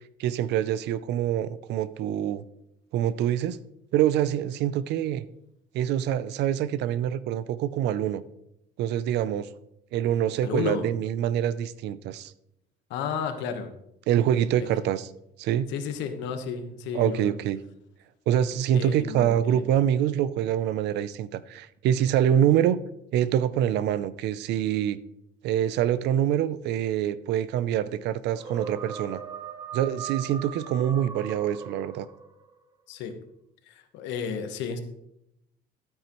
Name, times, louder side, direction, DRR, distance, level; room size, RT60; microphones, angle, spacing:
voice 1, 0.2-2.4 2.9-3.6 3.9-5.2 5.7-8.2 8.8-9.5 9.9-12.3 14.1-15.1 15.4-15.7 16.9-17.6 18.3-22.8 23.1-25.0 25.4-29.2 29.7-32.1, right 10 dB, 70° right, 16 dB, 0.6 m, -25 dB
voice 2, 10.4-10.8 12.9-13.7 14.6-14.7 15.7-17.3 18.7-19.6 32.9-33.2 33.7-34.8, left 6 dB, 85° left, 7 dB, 1.3 m, -32 dB
sound 1, 28.4-32.5, right 7 dB, 20° right, 0.9 m, -39 dB
12.0 x 9.2 x 3.1 m, 0.80 s
cardioid pair, 150°, 18 cm